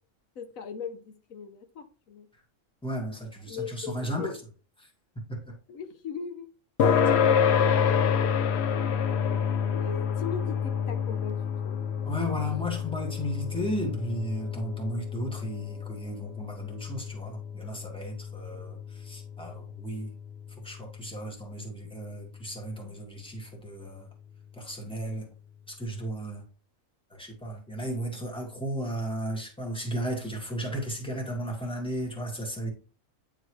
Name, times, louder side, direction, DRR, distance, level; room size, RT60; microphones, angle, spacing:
voice 1, 0.3-2.3 3.5-4.3 5.7-6.5 7.0-8.2 8.7-11.3 11.6-11.8, left 6 dB, 85° left, 1.3 m, -40 dB
voice 2, 2.8-4.4 5.3-5.6 7.1-7.4 12.0-20.1 20.6-24.1 24.6-25.3 25.7-26.4 27.1-32.7, equal, 5° left, 1.7 m, -34 dB
sound 1, 6.8-21.7, left 7 dB, 60° left, 0.8 m, -28 dB
9.2 x 3.9 x 3.1 m
omnidirectional pair, 1.4 m